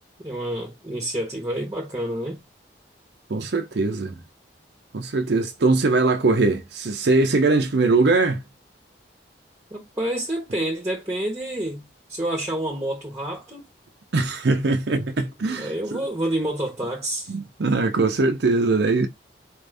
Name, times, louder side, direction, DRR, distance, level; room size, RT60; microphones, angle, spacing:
voice 1, 0.2-2.4 9.7-13.6 15.5-17.3, right 1 dB, 15° right, 1.0 m, -28 dB
voice 2, 3.3-4.2 4.9-8.4 14.1-16.0 17.3-19.1, right 3 dB, 65° right, 0.6 m, -21 dB
4.3 x 2.6 x 3.3 m
head